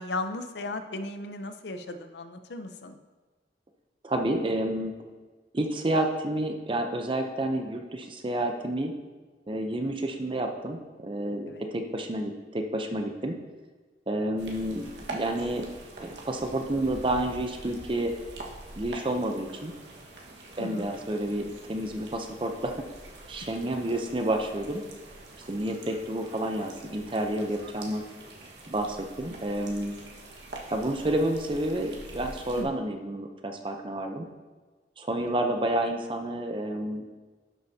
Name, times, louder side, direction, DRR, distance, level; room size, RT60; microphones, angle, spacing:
voice 1, 0.0-3.0 11.5-11.7 20.6-20.9 32.6-32.7, left 2 dB, 75° left, 8 dB, 0.7 m, -36 dB
voice 2, 4.0-4.9 5.5-8.9 9.5-13.4 14.1-15.7 16.0-18.1 18.8-19.7 20.6-22.7 23.3-24.8 25.5-28.0 28.7-30.0 30.7-34.3 35.0-37.0, right 1 dB, 30° right, 4 dB, 0.7 m, -30 dB
sound 1, 14.4-32.6, right 2 dB, 80° right, 1.6 m, -45 dB
12.0 x 7.8 x 2.8 m, 1.4 s
head